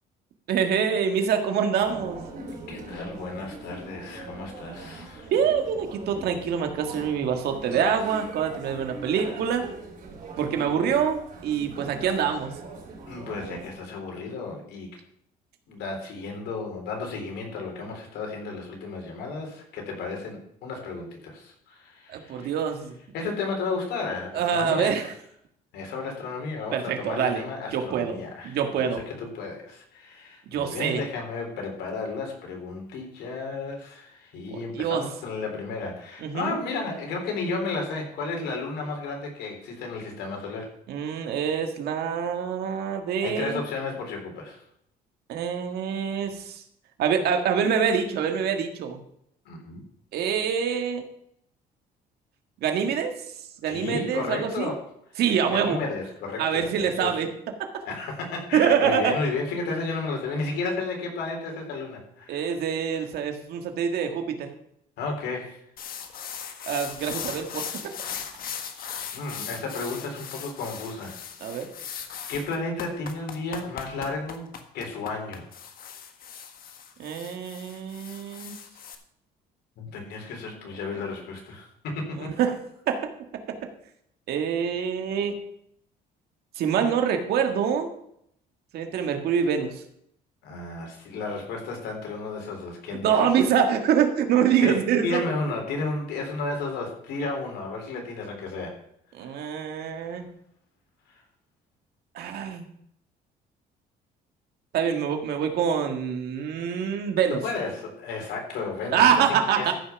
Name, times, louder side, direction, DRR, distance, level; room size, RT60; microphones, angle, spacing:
voice 1, 0.5-2.2 5.3-9.6 10.4-12.6 22.1-22.9 24.3-25.1 26.7-27.4 27.7-29.0 30.5-31.0 34.5-35.0 36.2-36.5 40.9-43.6 45.3-46.6 47.0-49.0 50.1-51.0 52.6-53.1 53.6-54.7 55.2-55.8 56.4-57.3 58.5-59.1 62.3-64.5 66.7-67.9 71.4-71.7 77.0-78.5 82.2-82.6 82.9-83.1 83.5-83.6 84.3-85.4 86.6-87.9 88.7-89.8 93.0-95.2 99.1-100.3 102.1-102.7 104.7-107.4 108.9-109.7, right 7 dB, 70° right, 5 dB, 1.8 m, -25 dB
sound 1, 1.8-13.7, right 3 dB, 55° right, 5.0 m, -41 dB
voice 2, 2.7-5.3 13.1-14.9 15.7-22.5 23.1-25.0 25.7-40.7 43.2-44.6 49.5-49.8 53.7-54.8 55.5-57.2 57.8-62.5 65.0-65.6 69.1-71.2 72.3-74.5 74.7-75.4 79.8-82.3 90.4-93.4 94.6-98.8 99.2-99.5 100.0-100.1 101.1-101.2 107.3-109.7, left 3 dB, 80° left, 1 dB, 3.8 m, -33 dB
sound 2, 65.8-78.9, left 8 dB, 60° left, 1.5 m, -38 dB
14.0 x 5.8 x 5.9 m, 0.72 s
cardioid pair, 110°, 17 cm